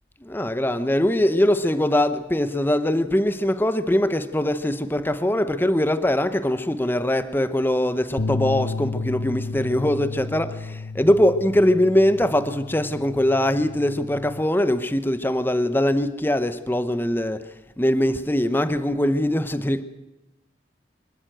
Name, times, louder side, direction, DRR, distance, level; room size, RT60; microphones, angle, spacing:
voice 1, 0.2-17.4 17.8-19.8, left 1 dB, 10° left, 0.8 m, -22 dB
sound 1, 8.2-14.4, left 3 dB, 85° left, 0.8 m, -32 dB
24.5 x 12.5 x 9.1 m
head